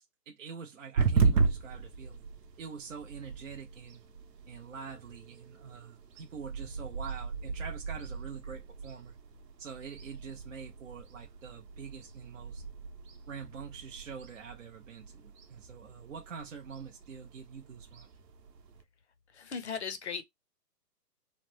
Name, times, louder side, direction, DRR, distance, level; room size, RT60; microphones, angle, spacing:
voice 1, 0.0-2.2 2.6-4.0 4.5-9.2 9.6-12.6 13.3-18.1, right 6 dB, 55° right, 0.5 m, -45 dB
sound 1, 1.0-18.8, right 5 dB, 80° right, 0.9 m, -36 dB
voice 2, 19.3-20.2, left 6 dB, 45° left, 0.5 m, -37 dB
3.1 x 2.0 x 3.0 m
hypercardioid pair, 160°, 49 cm